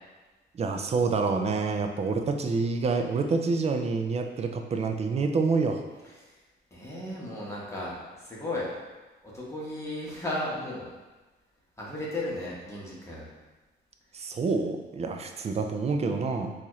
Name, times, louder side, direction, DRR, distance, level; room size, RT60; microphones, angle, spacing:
voice 1, 0.5-5.8 14.1-16.5, right 4 dB, 30° right, 5 dB, 0.4 m, -27 dB
voice 2, 6.7-8.7 9.2-10.9 11.8-13.3, left 1 dB, 15° left, -6 dB, 1.1 m, -35 dB
4.0 x 2.4 x 3.1 m, 1.2 s
cardioid pair, 90°, 20 cm